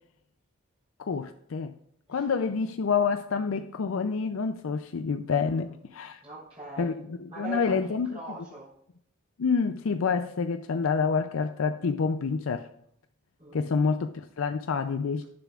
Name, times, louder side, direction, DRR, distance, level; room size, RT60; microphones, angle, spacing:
voice 1, 1.0-1.7 2.1-6.2 6.8-8.1 9.4-12.7 13.5-15.2, left 5 dB, 85° left, 0.5 m, -28 dB
voice 2, 6.2-7.0 7.3-8.7 13.4-13.8, right 2 dB, 30° right, 3.9 m, -42 dB
18.5 x 6.9 x 2.4 m
head